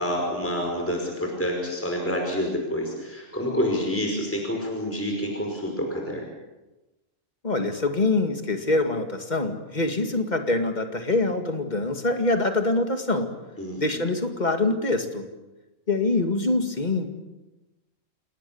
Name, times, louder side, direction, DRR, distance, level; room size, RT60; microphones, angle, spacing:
voice 1, 0.0-6.3 13.6-14.0, equal, 10° left, 1 dB, 5.2 m, -28 dB
voice 2, 7.4-13.3 13.8-15.3 15.9-17.1, left 2 dB, 35° left, 5 dB, 2.2 m, -24 dB
28.5 x 19.0 x 7.1 m, 1.1 s
omnidirectional pair, 1.4 m